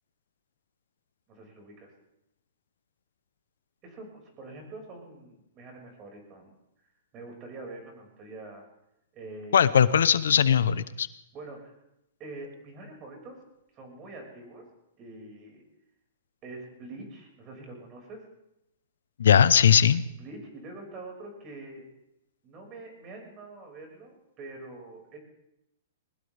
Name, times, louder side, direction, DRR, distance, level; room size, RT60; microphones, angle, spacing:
voice 1, 1.3-1.9 3.8-6.6 7.1-8.7 9.1-9.7 11.3-11.7 12.2-13.4 13.7-14.7 15.0-15.6 16.4-18.2 20.2-21.8 22.4-25.2, right 2 dB, 25° right, 2 dB, 5.8 m, -44 dB
voice 2, 9.5-11.1 19.2-20.0, left 8 dB, 90° left, 15 dB, 0.8 m, -19 dB
20.5 x 20.0 x 3.5 m, 0.83 s
hypercardioid pair, 155°, 0 cm